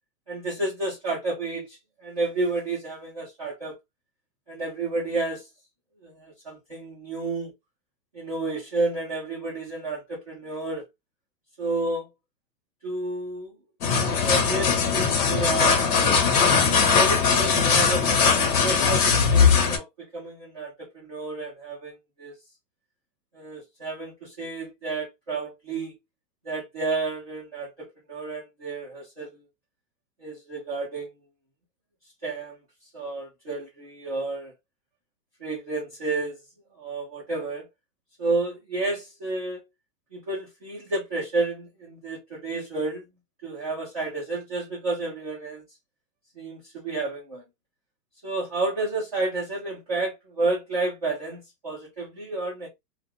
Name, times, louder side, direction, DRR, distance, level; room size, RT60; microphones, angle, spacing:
voice 1, 0.3-3.8 4.5-5.5 6.0-7.5 8.1-10.9 11.6-12.1 12.8-13.5 14.2-16.3 16.9-22.3 23.3-26.0 26.4-29.4 30.2-31.1 32.2-32.6 32.9-34.5 35.4-36.4 36.8-37.7 38.2-39.6 40.1-43.1 43.4-45.6 46.3-47.4 48.2-52.7, right 3 dB, 25° right, 0.4 m, -31 dB
sound 1, 13.8-19.8, left 6 dB, 60° left, 0.8 m, -20 dB
2.3 x 2.2 x 2.6 m
hypercardioid pair, 165°, 50 cm